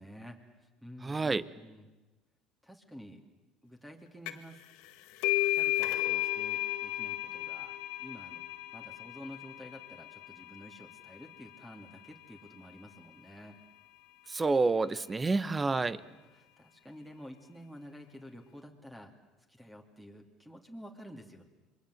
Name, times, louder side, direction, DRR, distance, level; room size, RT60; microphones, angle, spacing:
voice 1, 0.0-1.9 2.6-3.2 3.6-4.6 5.5-8.4 8.7-13.6 15.8-19.1 19.5-21.4, equal, 5° right, 3 dB, 2.9 m, -50 dB
voice 2, 1.0-1.4 14.3-16.0, right 3 dB, 20° right, 17 dB, 1.0 m, -28 dB
sound 1, 4.3-4.6 4.8-12.1, left 16 dB, 75° left, 1.7 m, -34 dB
27.0 x 22.5 x 7.9 m, 1.1 s
supercardioid pair, 90°, 0 cm